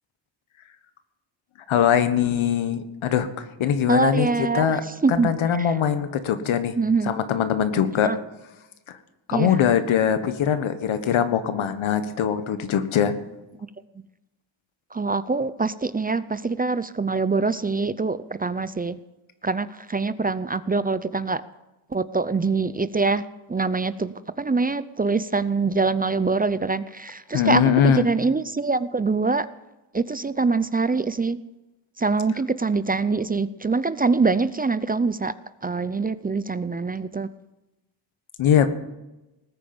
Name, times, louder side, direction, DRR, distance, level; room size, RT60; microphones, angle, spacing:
voice 1, 1.7-4.8 5.1-6.7 7.0-8.2 8.9-9.0 9.3-13.1 27.3-28.1 38.4-38.7, left 8 dB, 85° left, 10 dB, 1.5 m, -22 dB
voice 2, 3.9-4.7 5.0-5.3 6.8-7.1 8.0-8.1 9.3-9.5 14.9-19.0 19.4-21.4 21.9-23.2 23.5-27.6 28.0-29.5 29.9-31.4 32.0-35.3 35.6-37.3, right 4 dB, 20° right, 14 dB, 0.5 m, -24 dB
19.5 x 9.1 x 7.1 m, 0.99 s
cardioid pair, 115°, 47 cm